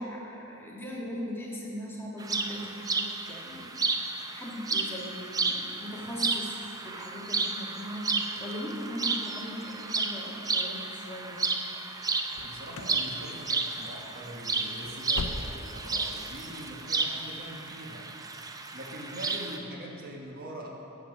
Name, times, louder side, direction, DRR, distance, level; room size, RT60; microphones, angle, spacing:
voice 1, 0.0-11.4, equal, 10° left, -4 dB, 1.6 m, -39 dB
sound 1, 2.2-19.6, right 3 dB, 15° right, 0.5 m, -32 dB
sound 2, 12.3-13.0 13.3-13.7 14.0-14.2 14.6-15.9 16.2-16.3 16.8-16.9, left 3 dB, 65° left, 0.5 m, -39 dB
voice 2, 12.4-18.1 18.7-20.7, right 1 dB, 45° right, -2 dB, 1.3 m, -42 dB
11.0 x 7.3 x 6.0 m, 2.8 s
head